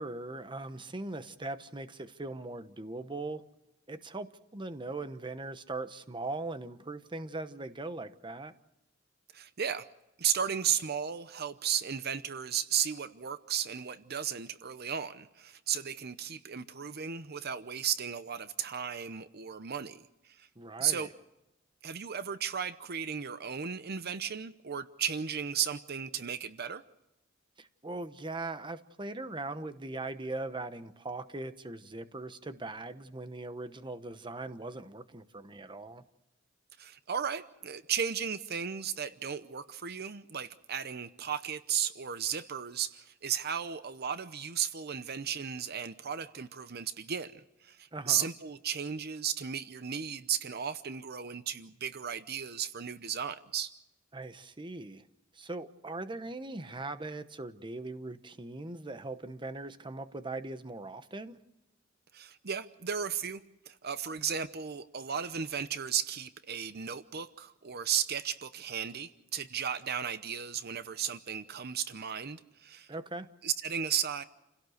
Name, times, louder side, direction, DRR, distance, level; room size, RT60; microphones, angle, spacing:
voice 1, 0.0-3.4 3.9-8.5 20.6-21.1 27.6-36.0 47.9-48.3 54.1-55.0 55.3-61.4 72.9-73.3, right 2 dB, 25° right, 11 dB, 1.0 m, -40 dB
voice 2, 9.3-9.9 10.2-20.5 20.8-21.1 21.8-26.8 36.8-53.7 62.1-63.4 63.7-72.9 73.4-74.2, right 8 dB, 55° right, 12 dB, 0.7 m, -35 dB
29.0 x 17.0 x 6.5 m, 0.94 s
head